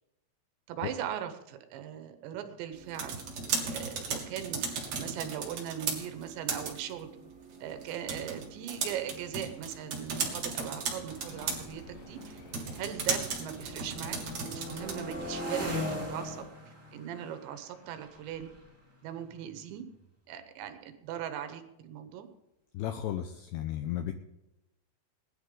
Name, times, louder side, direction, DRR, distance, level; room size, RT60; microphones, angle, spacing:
voice 1, 0.7-3.2 3.7-4.6 4.9-7.1 7.6-12.4 12.8-14.2 14.5-16.5 16.9-18.5 19.0-19.9 20.3-22.3, right 10 dB, 75° right, 8 dB, 3.2 m, -39 dB
sound 1, 2.7-15.2, right 5 dB, 45° right, 2.8 m, -37 dB
sound 2, 7.6-7.7 7.9-8.3 9.0-12.9 13.3-19.9, left 1 dB, 5° right, 1.4 m, -42 dB
sound 3, 11.0-16.5, left 4 dB, 60° left, 3.4 m, -51 dB
voice 2, 22.7-24.1, left 11 dB, 85° left, 8 dB, 2.3 m, -34 dB
20.5 x 11.0 x 3.8 m, 0.94 s
omnidirectional pair, 5.4 m